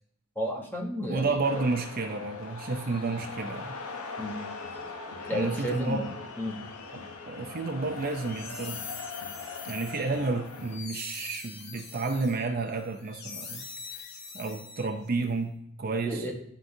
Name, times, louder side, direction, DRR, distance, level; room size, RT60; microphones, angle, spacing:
voice 1, 0.4-1.4 4.2-4.4 5.3-6.0 6.4-6.6 16.1-16.3, equal, 10° left, -1 dB, 0.9 m, -32 dB
voice 2, 1.1-3.8 5.3-6.1 6.9-8.8 9.6-13.6 13.9-14.0 14.3-16.3, right 3 dB, 40° right, 3 dB, 0.5 m, -31 dB
sound 1, 1.4-10.8, left 4 dB, 80° left, 0.7 m, -41 dB
sound 2, 8.0-15.2, left 5 dB, 45° left, 0.9 m, -44 dB
10.5 x 3.7 x 2.7 m, 0.74 s
head